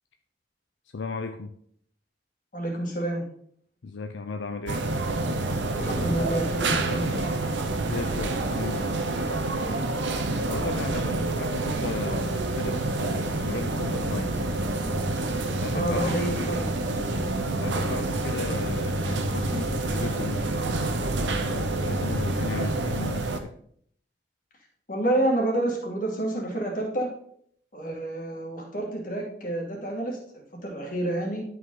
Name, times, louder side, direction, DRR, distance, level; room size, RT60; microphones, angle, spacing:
voice 1, 0.9-1.5 3.8-4.9 7.8-9.0 10.5-14.5 15.3-16.2 17.4-20.5 21.2-23.5, left 4 dB, 80° left, 6 dB, 0.5 m, -36 dB
voice 2, 2.5-3.2 5.7-7.3 15.7-16.8 24.9-27.1 27.7-31.4, right 1 dB, 45° left, -1 dB, 2.1 m, -29 dB
sound 1, 4.7-23.4, right 2 dB, 80° right, 0.9 m, -28 dB
Thunder / Rain, 5.7-15.6, equal, 15° left, 2.3 m, -42 dB
sound 2, 12.3-22.8, equal, 15° right, 1.7 m, -36 dB
11.0 x 5.1 x 3.8 m, 0.65 s
head